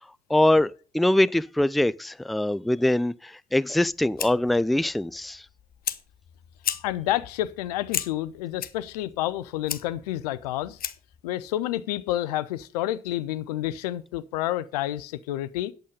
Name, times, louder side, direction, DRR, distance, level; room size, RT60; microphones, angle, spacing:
voice 1, 0.3-5.4, left 1 dB, ahead, 0.4 m, -23 dB
Fire, 3.7-11.2, left 10 dB, 45° left, 0.8 m, -36 dB
voice 2, 6.8-10.8 11.2-15.7, left 14 dB, 75° left, 0.5 m, -29 dB
8.8 x 8.5 x 5.2 m
figure-of-eight pair, 40°, 20 cm